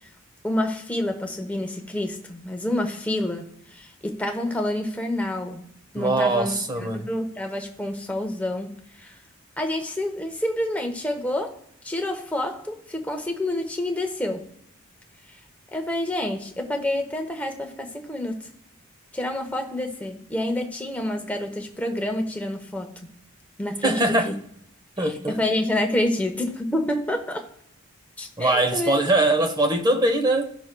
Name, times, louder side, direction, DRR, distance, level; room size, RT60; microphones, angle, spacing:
voice 1, 0.4-5.7 5.9-9.1 9.6-11.6 11.8-14.4 15.7-18.5 19.1-23.1 23.6-24.3 25.0-27.5 28.2-28.9, left 1 dB, 5° left, 0.8 m, -28 dB
voice 2, 6.0-7.1 23.8-24.3 25.0-25.4 28.4-30.5, right 2 dB, 20° right, 0.8 m, -22 dB
16.5 x 6.1 x 2.2 m
head